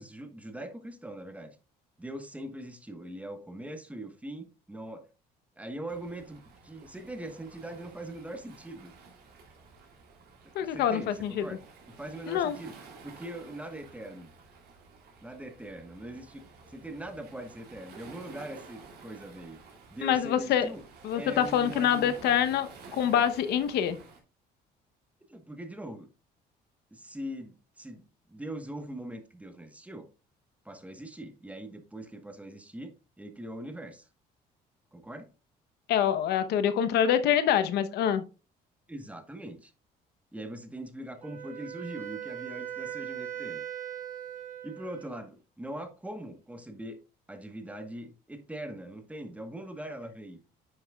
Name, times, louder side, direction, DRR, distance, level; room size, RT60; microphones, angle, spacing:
voice 1, 0.0-1.6 2.0-5.1 5.6-8.9 10.4-11.6 11.9-12.7 13.0-14.3 15.2-16.4 16.7-19.6 19.9-20.8 21.1-22.1 25.3-26.1 26.9-30.1 30.6-34.1 34.9-35.3 38.9-39.7 40.3-43.6 44.6-47.0 47.3-50.4, right 1 dB, 10° right, 1.1 m, -41 dB
Waves surf, 5.9-24.2, right 4 dB, 70° right, 3.0 m, -51 dB
voice 2, 10.5-11.4 12.3-12.6 20.0-20.7 21.0-24.0 35.9-38.2, left 9 dB, 75° left, 0.9 m, -26 dB
Wind instrument woodwind instrument, 41.2-45.3, right 10 dB, 50° right, 1.7 m, -40 dB
9.7 x 5.9 x 2.3 m
cardioid pair, 110°, 17 cm